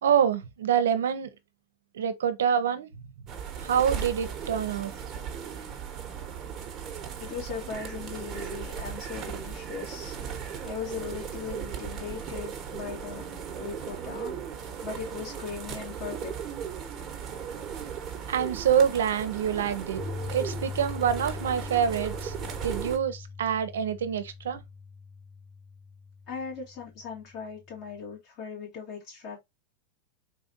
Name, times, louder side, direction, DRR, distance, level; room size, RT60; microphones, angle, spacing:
voice 1, 0.0-1.3 1.9-2.9 3.6-4.9 18.3-20.0 20.3-22.3 22.6-24.6, right 8 dB, 90° right, 0.6 m, -26 dB
sound 1, 3.3-23.0, right 7 dB, 30° right, 1.1 m, -37 dB
voice 2, 7.2-10.2 10.6-13.2 13.6-14.3 14.8-16.3 26.3-29.4, left 6 dB, 50° left, 2.4 m, -39 dB
Piano, 20.0-28.1, left 4 dB, 50° right, 0.7 m, -41 dB
3.9 x 2.6 x 2.6 m
hypercardioid pair, 115°, 0 cm